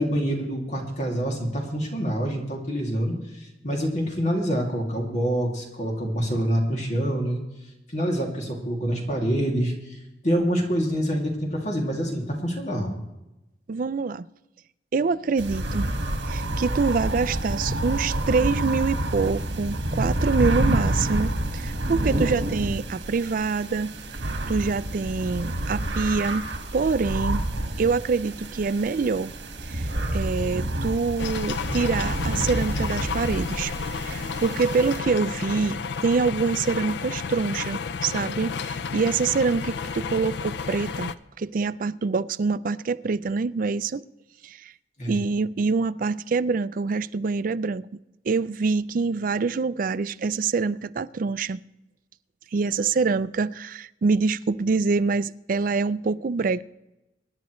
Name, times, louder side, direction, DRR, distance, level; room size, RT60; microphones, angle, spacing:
voice 1, 0.0-7.4 7.9-10.0 10.2-13.0 45.0-45.2, equal, 40° left, 2.5 m, -26 dB
voice 2, 13.7-14.3 14.9-15.9 16.2-26.5 26.7-27.4 27.8-29.3 29.7-33.7 34.0-44.0 44.4-44.7 45.1-47.9 48.2-51.6 52.5-56.6, right 4 dB, 50° right, 0.4 m, -25 dB
sound 1, 15.4-35.0, right 1 dB, 75° right, 1.6 m, -28 dB
sound 2, 31.2-41.1, left 5 dB, 70° left, 0.5 m, -32 dB
25.0 x 10.5 x 3.1 m
head